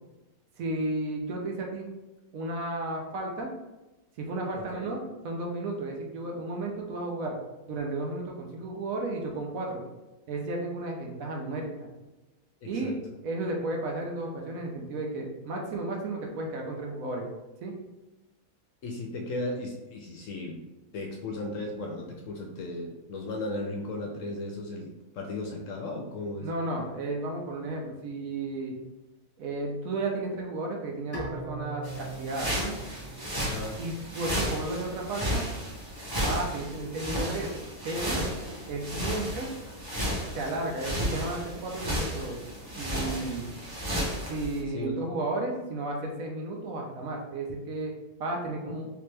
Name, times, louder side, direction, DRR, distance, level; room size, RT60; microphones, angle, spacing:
voice 1, 0.6-1.9 2.3-3.5 4.2-7.4 7.7-9.8 10.3-11.9 12.7-13.0 13.2-17.3 17.6-17.7 26.4-28.7 29.4-32.7 33.8-35.4 36.2-37.5 37.8-38.2 38.7-39.5 40.3-42.4 42.8-43.5 44.3-47.9 48.2-48.9, right 2 dB, 70° right, 0 dB, 1.0 m, -33 dB
voice 2, 4.6-4.9 12.6-13.0 18.8-20.6 20.9-24.9 25.1-26.5 33.4-33.8 40.2-40.4 44.7-44.9, left 2 dB, 70° left, 1 dB, 0.8 m, -36 dB
Bowed string instrument, 31.1-34.4, right 2 dB, 20° left, 0.8 m, -41 dB
sound 1, 31.8-44.6, equal, 25° right, 0.6 m, -33 dB
3.3 x 2.9 x 3.2 m, 1.1 s
omnidirectional pair, 1.6 m